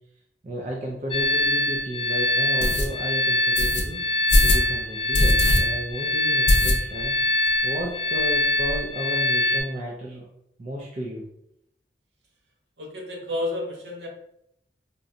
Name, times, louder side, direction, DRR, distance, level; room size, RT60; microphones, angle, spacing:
voice 1, 0.4-4.0 4.4-7.1 7.6-10.2 10.6-11.2, equal, 40° right, -3 dB, 0.4 m, -33 dB
sound 1, 1.1-9.6, left 1 dB, 30° left, 0.4 m, -24 dB
sound 2, 1.2-1.3 1.8-1.9 2.6-2.9 3.6-3.8 4.3-4.7 5.1-5.6 5.9-6.0 6.5-7.1 7.5-7.6 7.8-7.9 8.2-8.8, left 1 dB, 75° left, 0.6 m, -21 dB
voice 2, 12.8-14.1, left 1 dB, 65° right, 0 dB, 0.8 m, -31 dB
3.9 x 2.2 x 2.5 m, 0.78 s
head